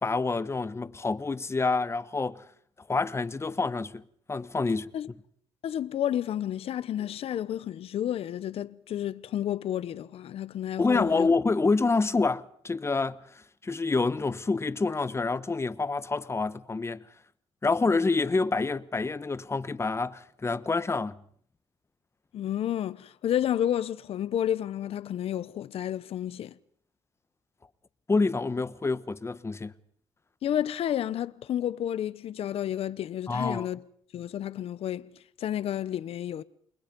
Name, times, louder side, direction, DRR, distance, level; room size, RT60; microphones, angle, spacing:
voice 1, 0.0-2.4 2.9-4.0 4.3-4.9 10.8-13.2 13.6-17.0 17.6-21.2 28.1-29.7 33.3-33.7, left 3 dB, 25° left, 1.2 m, -27 dB
voice 2, 5.6-11.3 22.3-26.5 30.4-33.8 34.1-36.4, left 11 dB, 70° left, 0.9 m, -31 dB
29.0 x 21.5 x 5.4 m
cardioid pair, 80°, 10 cm